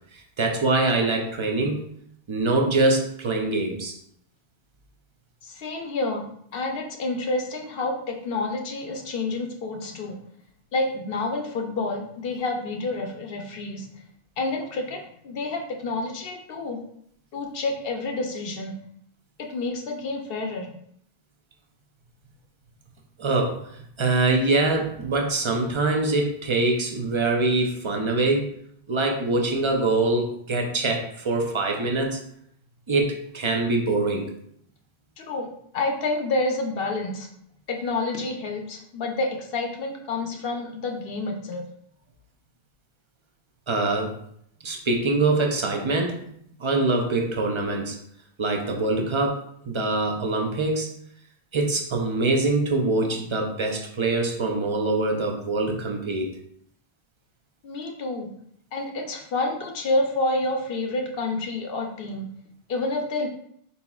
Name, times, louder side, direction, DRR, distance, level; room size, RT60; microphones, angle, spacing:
voice 1, 0.1-1.8 2.3-3.9 23.2-23.6 24.0-28.5 28.9-32.2 32.9-34.3 43.7-44.1 44.6-46.2 46.6-48.0 48.4-50.9 51.5-56.3, right 2 dB, 40° right, 2 dB, 0.5 m, -24 dB
voice 2, 5.4-6.3 6.5-10.2 10.7-14.0 14.4-16.8 17.3-18.8 19.5-20.7 35.2-35.5 35.7-37.3 37.7-41.6 57.6-58.3 58.7-62.3 62.7-63.3, left 2 dB, 65° left, 2 dB, 0.8 m, -28 dB
4.1 x 4.1 x 2.3 m, 0.69 s
omnidirectional pair, 1.1 m